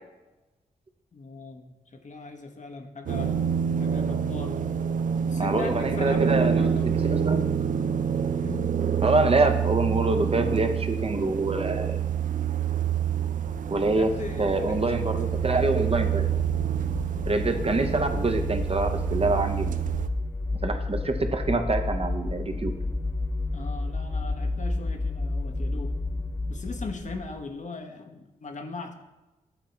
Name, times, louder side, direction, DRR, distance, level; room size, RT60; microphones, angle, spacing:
voice 1, 1.1-3.4 3.8-4.6 5.2-7.0 8.3-8.8 13.9-15.1 23.5-26.0 26.5-28.9, left 3 dB, 55° left, 5 dB, 0.9 m, -39 dB
sound 1, 3.1-20.1, right 8 dB, 60° right, 0.4 m, -27 dB
voice 2, 5.4-7.5 9.0-12.0 13.7-14.1 14.4-16.3 17.3-19.8 20.6-22.7, right 2 dB, 40° right, 6 dB, 0.8 m, -26 dB
sound 2, 12.2-27.5, left 2 dB, 15° left, 0.4 m, -32 dB
8.1 x 3.7 x 4.5 m, 1.1 s
cardioid pair, 45°, 15 cm